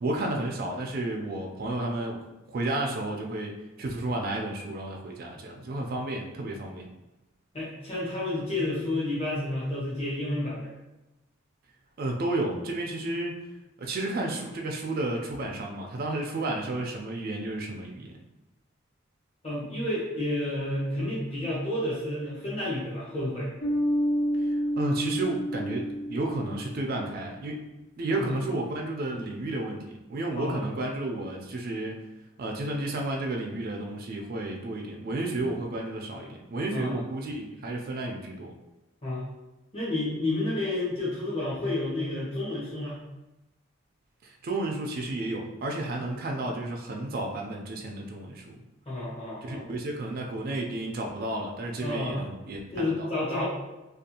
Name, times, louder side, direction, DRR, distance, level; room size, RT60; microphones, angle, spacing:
voice 1, 0.0-2.2 2.5-6.9 12.0-13.4 13.8-18.1 24.8-27.6 28.0-32.0 32.4-38.5 44.2-48.5 49.4-52.9, right 2 dB, 45° right, 0 dB, 0.3 m, -32 dB
voice 2, 7.5-10.7 19.4-23.5 28.1-28.3 30.3-30.6 36.7-37.0 39.0-39.2 39.7-43.0 48.9-49.7 51.8-52.3 52.7-53.4, left 1 dB, 30° left, -8 dB, 0.8 m, -30 dB
Bass guitar, 23.6-27.1, equal, 65° left, 0.6 m, -29 dB
2.5 x 2.3 x 2.7 m, 1.0 s
head